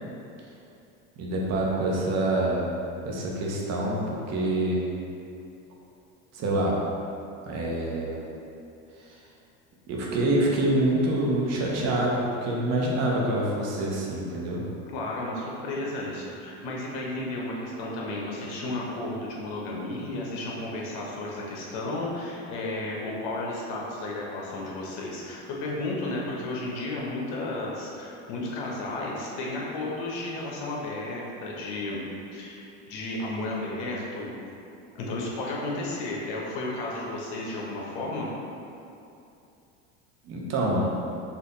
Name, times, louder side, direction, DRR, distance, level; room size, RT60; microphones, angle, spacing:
voice 1, 1.2-2.7 3.0-4.8 6.3-6.8 7.5-8.2 9.9-14.6 40.2-40.9, right 1 dB, 45° right, -3 dB, 0.9 m, -26 dB
voice 2, 14.9-32.0 32.3-34.3 34.9-38.3, left 2 dB, 60° left, -3 dB, 1.0 m, -33 dB
4.3 x 2.6 x 4.0 m, 2.7 s
supercardioid pair, 105°, 36 cm